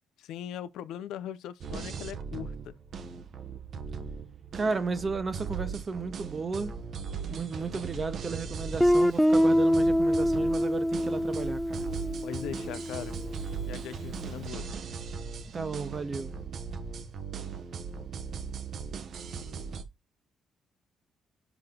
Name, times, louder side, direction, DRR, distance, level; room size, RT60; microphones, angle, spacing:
voice 1, 0.2-2.8 12.2-13.2 13.6-14.7, left 10 dB, 85° left, 0.5 m, -40 dB
sound 1, 1.6-19.8, right 6 dB, 60° right, 0.9 m, -38 dB
voice 2, 4.5-6.7 7.3-11.8 15.5-16.3, right 4 dB, 35° right, 1.1 m, -33 dB
Guitar, 8.8-13.5, equal, ahead, 0.3 m, -25 dB
6.1 x 4.8 x 3.7 m
cardioid pair, 90°, 0 cm